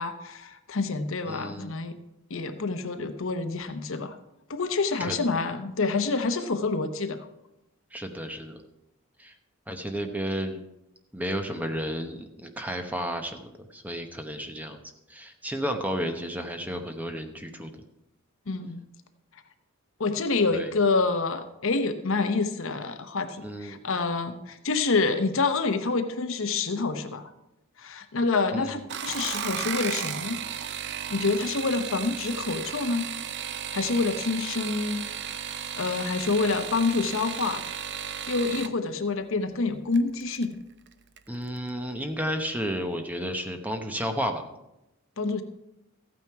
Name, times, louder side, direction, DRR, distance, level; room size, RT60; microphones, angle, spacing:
voice 1, 0.0-1.9 2.3-4.2 4.5-7.3 18.5-18.8 20.0-27.3 27.8-30.4 31.1-33.1 33.5-35.0 35.5-37.6 38.3-40.5 45.2-45.4, left 3 dB, 65° left, 9 dB, 0.9 m, -27 dB
voice 2, 1.3-1.7 5.0-5.2 7.9-8.6 9.2-9.3 9.7-10.6 11.1-14.8 15.1-17.7 20.5-20.7 23.4-23.8 28.5-28.8 41.3-44.4, equal, 5° right, 5 dB, 0.9 m, -32 dB
sound 1, 28.8-38.7 39.9-40.4 40.9-41.3 41.6-41.7, right 9 dB, 55° right, 0.6 m, -34 dB
14.0 x 9.1 x 4.6 m, 0.92 s
head